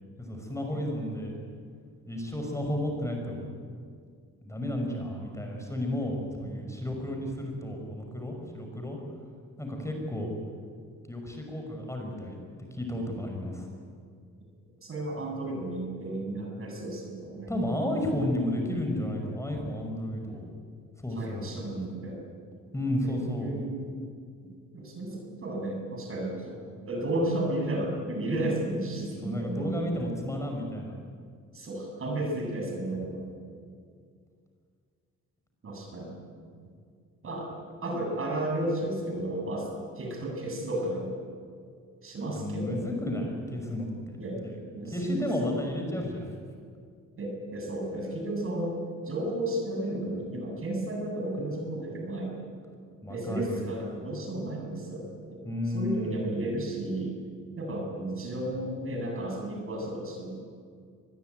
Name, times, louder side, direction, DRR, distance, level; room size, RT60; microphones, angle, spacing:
voice 1, 0.2-1.4 2.1-3.5 4.4-9.0 9.6-10.3 11.1-12.4 12.7-13.7 17.5-20.5 21.0-21.5 22.7-23.5 29.2-31.1 42.3-44.5 44.8-46.3 53.0-53.6 55.4-56.4, left 1 dB, 10° left, 2 dB, 5.5 m, -32 dB
voice 2, 14.8-17.9 21.2-22.2 23.0-24.0 24.7-30.1 31.5-33.3 35.6-36.2 37.2-37.5 37.8-39.7 40.0-41.1 42.0-42.9 44.2-44.4 44.7-45.5 47.2-48.7 49.1-52.4 53.1-55.4 55.7-57.1 57.6-60.3, right 1 dB, 45° right, 1 dB, 7.9 m, -33 dB
24.0 x 20.5 x 9.3 m, 2.2 s
cardioid pair, 90°, 30 cm